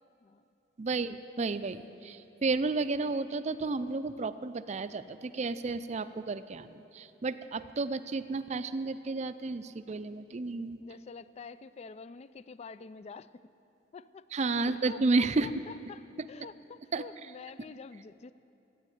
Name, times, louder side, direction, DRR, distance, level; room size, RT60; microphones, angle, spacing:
voice 1, 0.8-10.8 14.3-15.5 16.9-17.0, right 3 dB, 40° right, 12 dB, 0.4 m, -32 dB
voice 2, 10.8-13.5 13.9-14.3 14.7-16.0 16.3-18.3, left 4 dB, 35° left, 16 dB, 0.3 m, -47 dB
13.5 x 9.3 x 9.3 m, 2.9 s
head